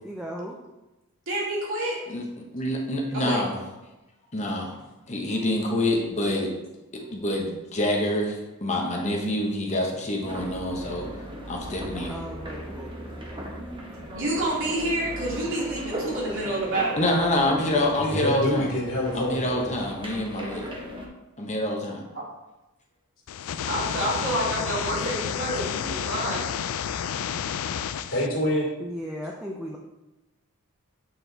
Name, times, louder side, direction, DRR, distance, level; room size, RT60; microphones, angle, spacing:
voice 1, 0.0-0.5 12.1-13.4 28.8-29.8, equal, 5° right, -2 dB, 0.5 m, -37 dB
voice 2, 1.3-2.0 3.1-3.4 14.1-17.0 23.7-26.4, right 1 dB, 60° right, -5 dB, 2.4 m, -28 dB
voice 3, 2.1-3.6 4.3-4.7 5.1-6.5 6.9-11.1 11.5-12.2 17.0-18.7 19.1-20.7 21.4-22.0, left 1 dB, 30° left, 0 dB, 1.0 m, -26 dB
sound 1, 10.2-21.1, right 1 dB, 25° right, 1.1 m, -38 dB
voice 4, 18.0-19.7 28.1-28.7, left 1 dB, 60° left, -3 dB, 2.4 m, -26 dB
sound 2, 23.3-28.3, left 8 dB, 80° left, 0.4 m, -30 dB
7.9 x 4.5 x 3.9 m, 1.0 s
head